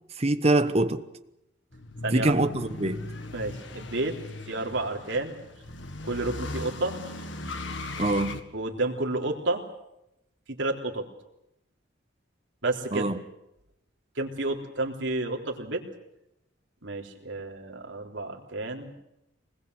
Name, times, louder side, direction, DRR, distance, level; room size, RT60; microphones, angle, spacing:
voice 1, 0.2-1.1 2.1-3.0 8.0-8.4 12.9-13.2, right 2 dB, 30° right, 1.2 m, -24 dB
sound 1, 1.7-8.4, left 2 dB, 70° left, 1.9 m, -38 dB
voice 2, 3.3-4.2 4.5-5.4 6.0-7.0 8.5-9.6 10.5-11.1 12.6-13.1 14.2-15.8 16.8-18.9, right 2 dB, 70° right, 3.6 m, -30 dB
25.0 x 20.5 x 8.1 m
head